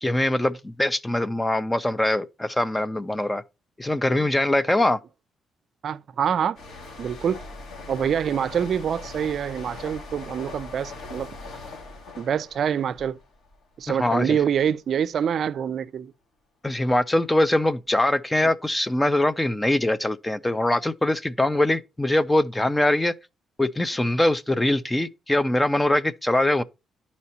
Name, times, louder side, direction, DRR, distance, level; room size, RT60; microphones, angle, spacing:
voice 1, 0.0-3.4 3.8-5.0 13.9-14.4 16.6-23.1 23.6-26.6, left 1 dB, 10° left, 0.5 m, -22 dB
voice 2, 5.8-6.6 7.0-7.4 7.9-11.3 12.2-13.2 13.8-16.1, right 8 dB, 60° right, 0.4 m, -26 dB
sound 1, 6.5-14.0 14.3-14.6, left 3 dB, 70° left, 2.0 m, -41 dB
11.0 x 4.2 x 2.8 m
cardioid pair, 90°, 0 cm